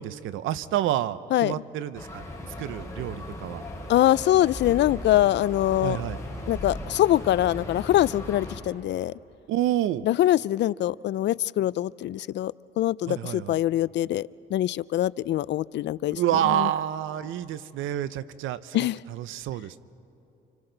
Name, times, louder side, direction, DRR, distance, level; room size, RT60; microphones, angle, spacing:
voice 1, 0.0-2.3 2.6-3.6 5.8-6.2 9.5-10.1 13.1-13.6 16.2-19.8, right 12 dB, 90° right, 15 dB, 0.6 m, -28 dB
sound 1, 1.9-8.6, left 1 dB, 15° left, 4.8 m, -37 dB
voice 2, 3.9-6.0 6.5-9.1 10.0-16.2 16.4-16.7 18.7-19.0, left 13 dB, 65° left, 20 dB, 0.4 m, -24 dB
29.5 x 27.0 x 3.9 m, 2.9 s
cardioid pair, 90°, 20 cm